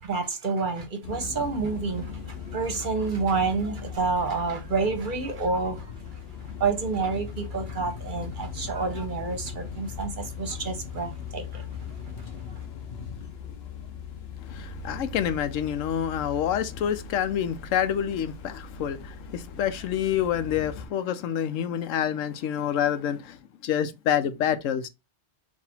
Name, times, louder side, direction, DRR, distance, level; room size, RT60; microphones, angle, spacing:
voice 1, 0.0-5.9 6.6-11.7 12.2-12.3, right 4 dB, 50° right, 0.8 m, -29 dB
sound 1, 1.0-20.9, left 6 dB, 60° left, 1.0 m, -39 dB
voice 2, 14.4-24.9, left 9 dB, 90° left, 1.0 m, -27 dB
4.2 x 2.7 x 4.2 m
omnidirectional pair, 1.3 m